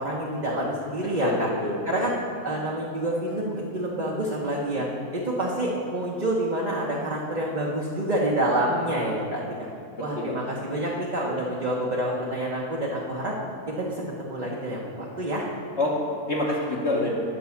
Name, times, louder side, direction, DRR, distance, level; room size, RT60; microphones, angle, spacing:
voice 1, 0.0-1.5 1.9-2.1 2.4-9.4 10.0-13.3 13.7-15.5, right 1 dB, 35° right, -4 dB, 0.8 m, -27 dB
voice 2, 1.2-1.8 10.2-10.5 15.8-17.1, left 2 dB, 50° left, -6 dB, 1.2 m, -27 dB
9.1 x 5.4 x 7.0 m, 2.4 s
omnidirectional pair, 1.6 m